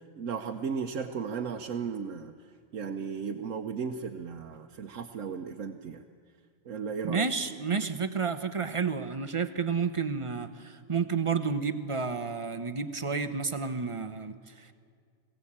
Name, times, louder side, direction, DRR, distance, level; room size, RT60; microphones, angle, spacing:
voice 1, 0.0-2.3 2.7-6.0 6.7-7.3 7.7-7.9, right 6 dB, 80° right, 3 dB, 1.2 m, -35 dB
voice 2, 7.0-14.7, right 5 dB, 30° right, 8 dB, 0.8 m, -31 dB
21.0 x 16.0 x 8.8 m, 2.2 s
omnidirectional pair, 1.3 m